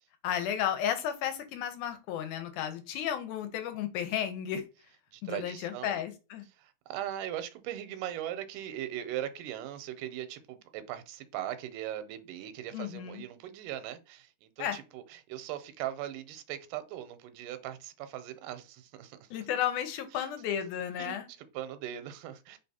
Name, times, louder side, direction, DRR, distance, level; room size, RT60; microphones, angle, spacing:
voice 1, 0.2-4.7 5.2-6.5 12.7-13.2 14.6-14.8 19.3-21.3, left 10 dB, 90° left, 2.1 m, -33 dB
voice 2, 5.1-6.0 6.6-19.3 20.1-20.3 21.0-21.2 21.5-22.6, right 12 dB, 90° right, 2.1 m, -39 dB
4.4 x 3.4 x 2.7 m
omnidirectional pair, 3.6 m